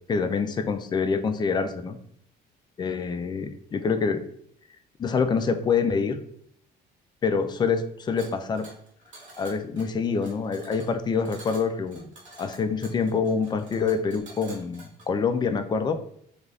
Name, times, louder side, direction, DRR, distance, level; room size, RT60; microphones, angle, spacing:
voice 1, 0.1-2.0 2.8-4.2 5.0-6.2 7.2-8.7 9.4-12.1 12.4-16.0, left 5 dB, 25° left, 8 dB, 0.3 m, -26 dB
sound 1, 8.2-15.1, right 2 dB, 50° right, 1.0 m, -48 dB
2.4 x 2.3 x 3.2 m, 0.67 s
cardioid pair, 110°, 17 cm